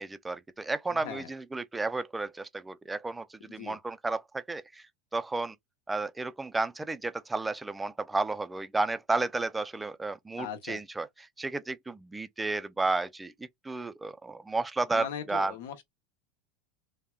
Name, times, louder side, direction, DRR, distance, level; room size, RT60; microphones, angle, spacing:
voice 1, 0.0-4.8 5.1-5.5 5.9-11.1 11.4-13.3 13.6-15.5, right 3 dB, 10° right, 0.3 m, -32 dB
voice 2, 0.9-1.3 3.4-3.8 10.4-10.8 14.9-15.8, left 8 dB, 80° left, 0.9 m, -40 dB
3.4 x 2.1 x 2.2 m
supercardioid pair, 135°, 0 cm